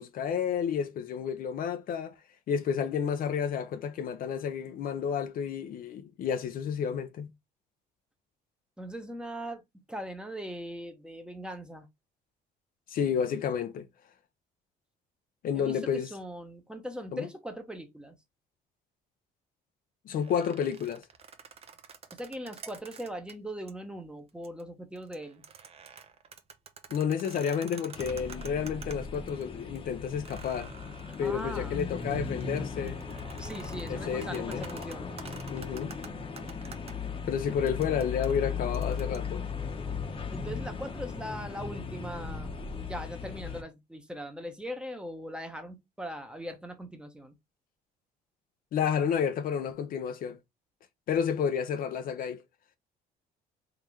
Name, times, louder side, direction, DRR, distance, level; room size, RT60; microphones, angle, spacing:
voice 1, 0.0-2.1 2.5-7.3 12.9-13.9 15.4-16.1 17.1-17.2 20.1-21.0 26.9-30.7 31.2-33.0 33.9-34.6 35.5-35.9 37.3-39.4 48.7-50.4 51.1-52.4, left 7 dB, 55° left, 0.6 m, -30 dB
voice 2, 8.8-9.6 9.9-11.9 15.5-18.1 22.1-25.4 31.1-31.8 33.4-35.1 40.3-47.3, equal, 5° right, 0.9 m, -40 dB
sound 1, 20.1-23.3 23.7-23.8 24.3-24.6 25.0-29.4 29.7-29.8 30.2-36.9 37.7-39.2, right 6 dB, 35° right, 0.6 m, -49 dB
sound 2, 27.9-43.6, left 5 dB, 30° left, 0.9 m, -37 dB
3.8 x 2.8 x 3.1 m
cardioid pair, 110°, 17 cm